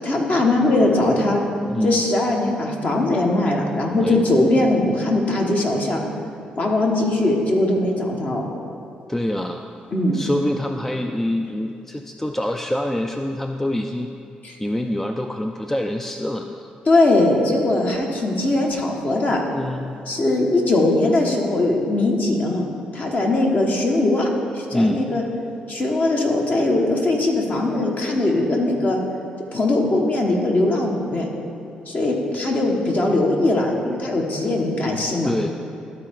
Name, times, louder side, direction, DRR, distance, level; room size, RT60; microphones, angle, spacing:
voice 1, 0.0-1.4 1.8-6.0 6.6-8.4 9.9-10.2 14.4-14.6 16.9-19.4 20.1-22.6 22.9-25.2 25.7-29.0 29.5-31.3 31.9-35.3, left 2 dB, 45° left, 0 dB, 1.4 m, -20 dB
voice 2, 1.7-2.0 4.0-4.5 9.1-9.7 10.1-14.1 14.6-16.7 19.5-19.9 24.7-25.1 35.2-35.5, left 1 dB, 10° left, 5 dB, 0.4 m, -25 dB
12.5 x 4.4 x 3.7 m, 2.7 s
hypercardioid pair, 40°, 4 cm